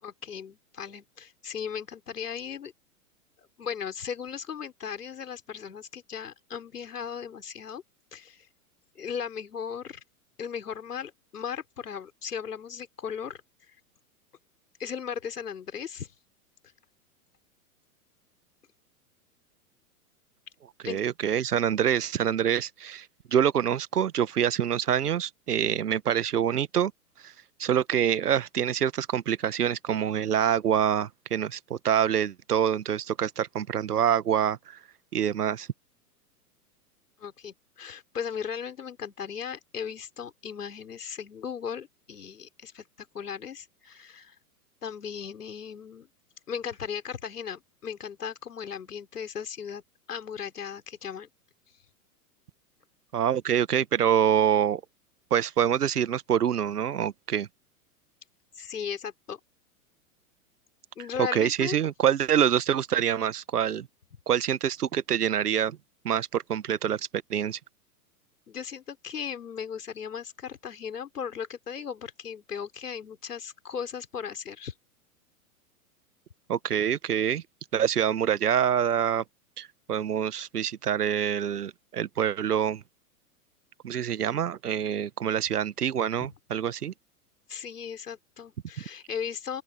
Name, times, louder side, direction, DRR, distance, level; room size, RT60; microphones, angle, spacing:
voice 1, 0.0-2.7 3.4-7.8 8.1-8.5 8.9-10.0 10.4-13.4 13.7-13.8 14.8-16.1 20.8-21.0 37.2-44.4 44.8-46.1 46.5-49.8 50.1-51.3 58.6-59.4 61.0-61.8 68.5-74.7 86.2-86.3 87.5-89.6, left 7 dB, 85° left, 4.5 m, -37 dB
voice 2, 20.8-23.1 23.3-26.9 27.2-27.3 27.6-34.8 35.1-35.7 53.1-54.8 55.3-57.5 61.3-63.9 64.3-65.8 66.0-67.6 76.5-77.4 77.7-79.2 79.6-82.8 83.8-86.9, right 9 dB, 85° right, 1.3 m, -26 dB
open air
hypercardioid pair, 115°, 45 cm